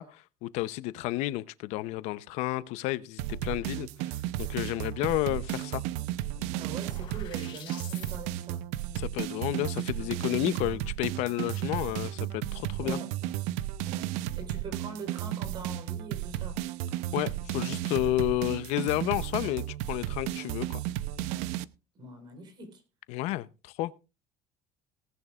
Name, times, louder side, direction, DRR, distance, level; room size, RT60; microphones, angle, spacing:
voice 1, 0.0-5.8 8.9-13.0 17.1-20.8 23.1-23.9, left 17 dB, 75° left, 0.7 m, -31 dB
sound 1, 3.2-21.6, right 13 dB, 90° right, 0.7 m, -34 dB
sound 2, 5.7-8.2, left 9 dB, 45° left, 5.3 m, -48 dB
voice 2, 6.6-8.6 12.8-13.1 13.8-14.1 14.4-16.6 21.9-22.8, right 3 dB, 40° right, 4.2 m, -43 dB
18.5 x 11.0 x 2.4 m
cardioid pair, 150°, 12 cm